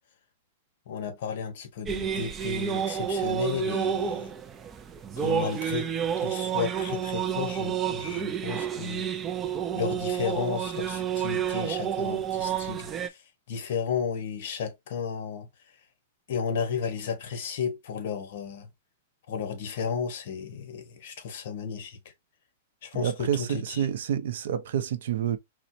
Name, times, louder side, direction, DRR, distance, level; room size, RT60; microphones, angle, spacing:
voice 1, 0.9-4.3 5.2-5.9 6.2-9.1 9.7-13.2 13.5-15.5 16.3-18.7 19.3-22.0 22.8-23.9, left 6 dB, 55° left, 0.9 m, -33 dB
sound 1, 1.9-13.1, right 9 dB, 15° right, 0.3 m, -30 dB
voice 2, 22.9-25.4, right 9 dB, 70° right, 0.5 m, -28 dB
4.1 x 2.0 x 2.6 m
supercardioid pair, 160°, 0 cm